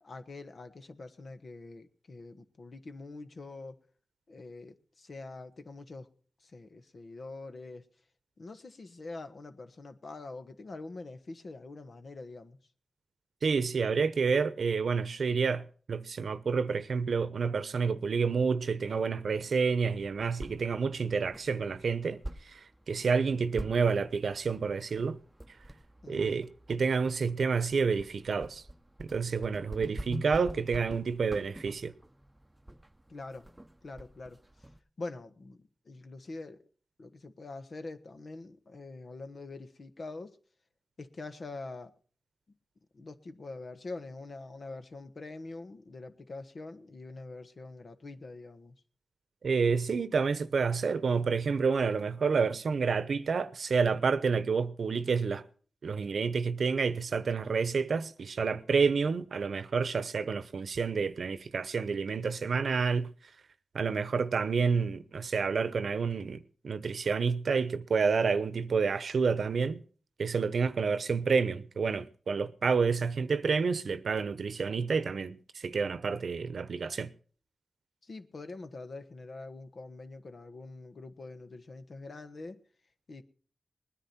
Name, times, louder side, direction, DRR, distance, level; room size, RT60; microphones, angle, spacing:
voice 1, 0.0-3.8 4.3-6.1 6.4-7.8 8.4-12.6 26.0-26.5 33.1-33.5 33.8-34.7 35.0-36.6 37.0-40.4 41.0-41.9 42.9-48.8 78.0-82.6 83.1-83.2, left 3 dB, 60° left, 1.4 m, -44 dB
voice 2, 13.4-25.2 26.1-28.6 29.0-31.9 49.4-55.4 55.8-63.1 63.7-69.8 70.2-77.1, right 5 dB, 75° right, 0.9 m, -29 dB
sound 1, 19.9-34.8, right 1 dB, 10° right, 0.8 m, -46 dB
20.0 x 10.0 x 4.3 m
cardioid pair, 60°, 0 cm